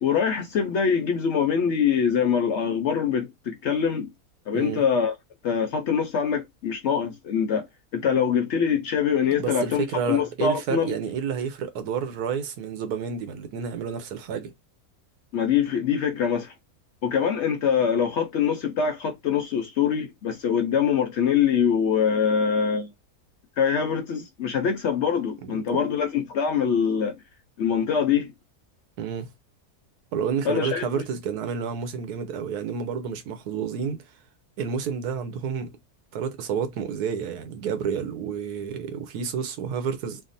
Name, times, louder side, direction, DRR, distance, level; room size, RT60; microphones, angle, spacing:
voice 1, 0.0-4.1 4.5-5.1 5.4-7.7 7.9-10.9 15.3-16.5 17.0-22.9 23.6-27.2 27.6-28.3 30.4-30.9, left 7 dB, 65° left, 0.7 m, -24 dB
voice 2, 4.5-4.8 9.4-14.5 25.4-25.8 29.0-29.3 30.1-34.0 34.6-35.8 36.1-40.2, right 6 dB, 85° right, 1.2 m, -30 dB
3.5 x 2.0 x 2.5 m
omnidirectional pair, 1.6 m